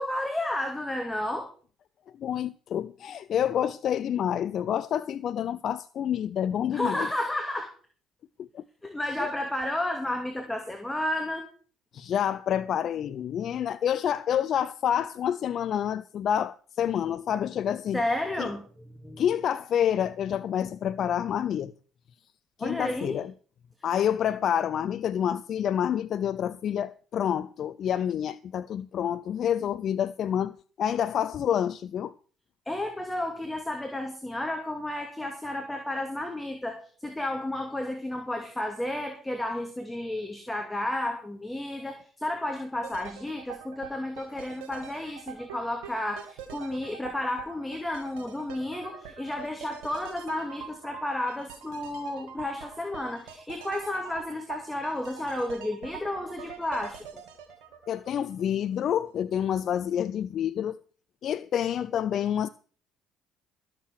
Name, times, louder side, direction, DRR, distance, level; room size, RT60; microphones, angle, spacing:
voice 1, 0.0-1.5 6.7-7.7 8.8-11.5 17.9-18.6 19.0-19.2 22.6-23.2 32.7-57.0, left 1 dB, 10° left, 2.6 m, -32 dB
voice 2, 2.2-7.1 8.4-8.6 9.2-9.3 11.9-18.0 18.4-18.5 19.2-21.7 22.6-23.3 23.8-32.1 57.9-60.8 61.2-62.5, left 9 dB, 55° left, 0.5 m, -28 dB
sound 1, 42.8-58.8 59.1-59.2, right 8 dB, 80° right, 2.3 m, -45 dB
13.5 x 7.6 x 6.4 m
hypercardioid pair, 60°, 0 cm